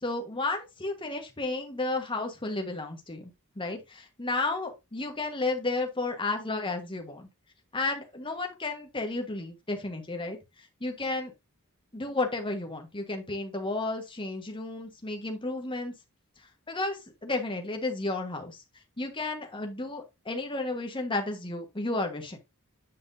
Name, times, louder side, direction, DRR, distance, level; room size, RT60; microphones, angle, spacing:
voice 1, 0.0-7.3 7.7-10.4 10.8-11.3 11.9-15.9 16.7-18.6 19.0-22.4, left 2 dB, 25° left, 1.4 m, -32 dB
7.9 x 6.1 x 2.7 m
head